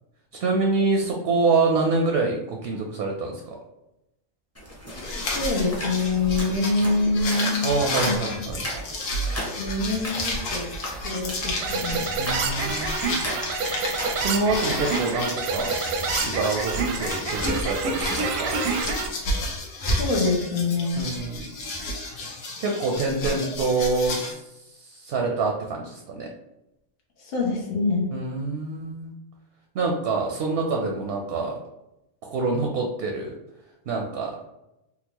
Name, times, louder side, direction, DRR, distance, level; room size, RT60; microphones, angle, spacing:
voice 1, 0.4-3.6 7.6-8.7 12.2-13.4 14.1-15.8 16.2-18.6 21.0-21.5 22.6-26.3 28.1-29.1 29.7-31.5 32.2-33.3 33.9-34.4, right 3 dB, 65° right, 1 dB, 0.6 m, -26 dB
sound 1, 4.5-14.8, equal, 15° left, 0.6 m, -36 dB
sound 2, 4.9-24.3, left 1 dB, 75° left, 1.1 m, -31 dB
voice 2, 5.3-7.7 8.0-8.2 9.6-10.7 11.0-12.0 19.8-21.1 27.2-28.1, left 3 dB, 50° left, -2 dB, 0.9 m, -25 dB
sound 3, 11.6-19.1, right 4 dB, 85° right, 1.0 m, -28 dB
3.8 x 2.3 x 2.8 m, 0.90 s
omnidirectional pair, 1.4 m